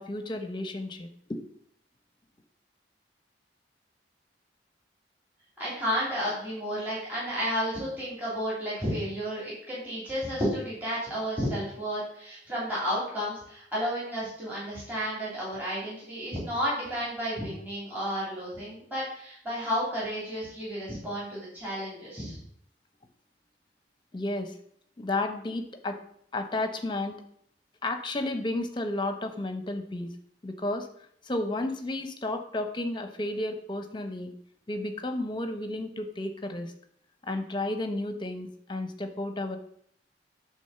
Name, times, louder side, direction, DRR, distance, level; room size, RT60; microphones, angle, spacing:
voice 1, 0.0-1.4 24.1-24.5 25.0-26.0 26.3-27.2 27.8-30.2 30.4-30.9 31.2-34.3 34.7-36.7 37.2-39.6, left 2 dB, 25° left, 7 dB, 0.8 m, -32 dB
voice 2, 5.6-22.4, equal, 10° right, -8 dB, 3.0 m, -32 dB
9.0 x 3.6 x 6.7 m, 0.66 s
head